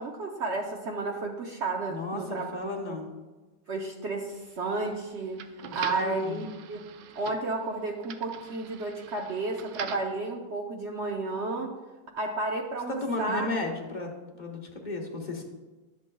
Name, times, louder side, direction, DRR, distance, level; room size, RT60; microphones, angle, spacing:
voice 1, 0.0-2.5 3.7-5.4 5.7-6.8 7.1-11.7 12.2-13.5, right 3 dB, 60° right, 1 dB, 0.7 m, -32 dB
voice 2, 1.9-3.1 5.6-6.4 13.0-15.4, left 2 dB, 35° left, 1 dB, 0.8 m, -34 dB
sound 1, 4.3-10.2, right 8 dB, 80° right, 1.2 m, -44 dB
12.0 x 7.1 x 2.3 m, 1.2 s
omnidirectional pair, 2.0 m